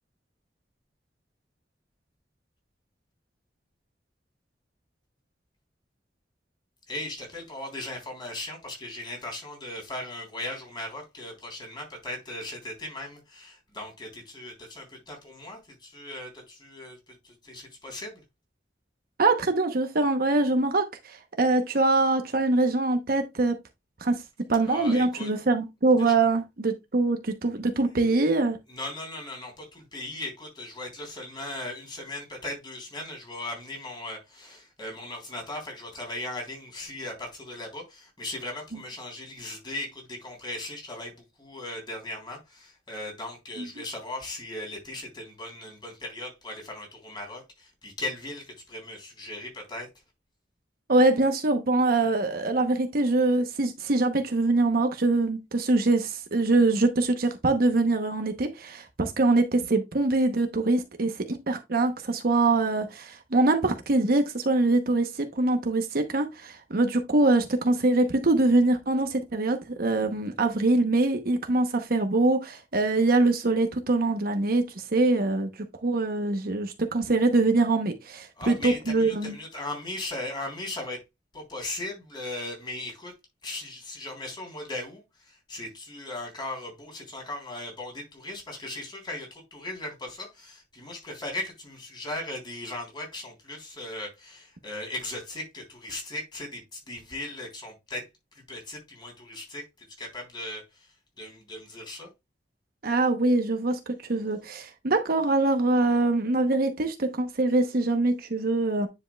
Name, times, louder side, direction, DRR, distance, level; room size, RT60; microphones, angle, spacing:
voice 1, 6.9-18.2 24.6-25.3 26.0-26.1 28.7-49.9 78.4-81.0 81.3-83.1 83.4-102.1, left 1 dB, 25° left, 3.5 m, -38 dB
voice 2, 19.2-23.6 24.0-24.2 24.5-28.6 38.7-38.8 43.6-43.7 50.9-75.5 75.8-79.4 102.8-108.9, right 2 dB, 60° right, 0.9 m, -24 dB
9.8 x 5.2 x 2.3 m
head